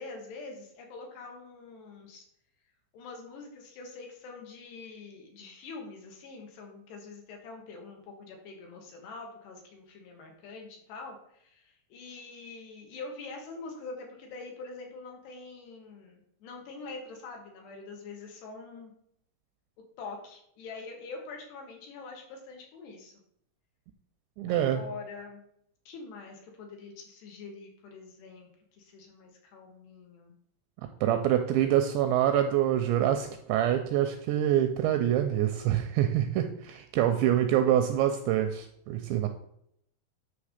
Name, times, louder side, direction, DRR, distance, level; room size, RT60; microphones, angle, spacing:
voice 1, 0.0-2.2 2.9-18.9 20.0-23.1 24.5-25.4 25.9-30.3, left 3 dB, 70° left, 1 dB, 3.1 m, -45 dB
voice 2, 24.4-24.8 31.0-39.3, right 11 dB, 85° right, 7 dB, 2.6 m, -26 dB
9.8 x 3.4 x 6.5 m, 0.72 s
omnidirectional pair, 5.5 m